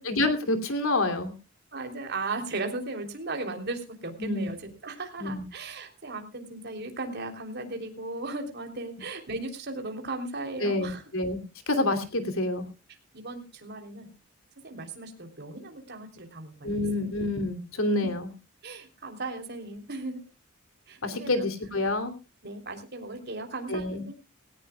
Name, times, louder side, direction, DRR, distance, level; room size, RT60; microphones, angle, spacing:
voice 1, 0.1-1.3 4.2-4.5 5.2-5.4 10.6-12.7 16.6-18.3 21.0-22.1 23.7-24.0, left 2 dB, 85° left, 7 dB, 3.0 m, -28 dB
voice 2, 1.7-11.0 13.1-14.1 14.6-16.7 18.0-18.1 18.6-20.2 20.9-21.5 22.4-24.1, right 2 dB, 55° right, 4 dB, 3.3 m, -36 dB
18.5 x 18.0 x 2.3 m, 0.31 s
head